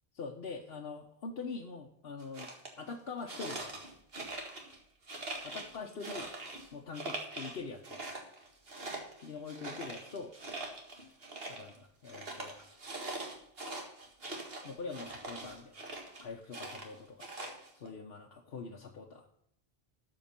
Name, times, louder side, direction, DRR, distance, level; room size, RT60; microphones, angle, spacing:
voice 1, 0.2-2.5 2.8-3.8 5.4-6.3 6.7-8.0 9.2-10.3 10.9-11.1 11.5-12.8 14.6-15.7 16.2-17.3 17.7-19.3, left 4 dB, 70° left, 0 dB, 1.2 m, -44 dB
sound 1, 2.2-2.7 3.3-4.8 5.1-6.7 6.9-7.6 7.8-11.8 12.0-16.2 16.5-17.9, right 2 dB, 70° right, 2.1 m, -43 dB
12.5 x 5.2 x 5.8 m, 0.72 s
omnidirectional pair, 1.0 m